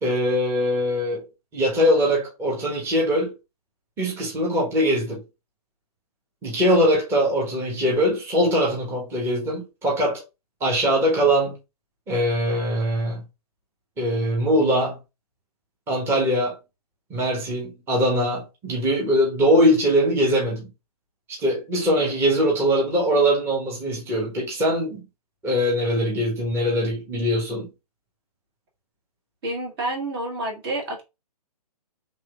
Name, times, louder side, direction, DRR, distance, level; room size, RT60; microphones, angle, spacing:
voice 1, 0.0-1.2 1.5-3.3 4.0-5.2 6.4-10.2 10.6-11.6 12.1-13.2 14.0-15.0 15.9-16.6 17.1-20.7 21.3-25.0 25.4-27.7, equal, 10° right, 0.9 m, -22 dB
voice 2, 29.4-31.1, right 2 dB, 40° right, 1.1 m, -29 dB
3.1 x 3.0 x 2.3 m
figure-of-eight pair, 125°, 20 cm